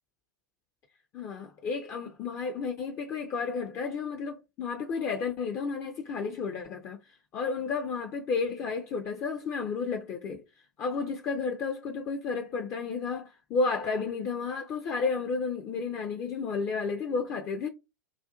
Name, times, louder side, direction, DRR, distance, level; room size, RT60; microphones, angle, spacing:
voice 1, 1.1-10.4 10.8-17.7, left 4 dB, 25° left, 0.4 m, -32 dB
2.4 x 2.3 x 2.4 m
figure-of-eight pair, 95°, 10 cm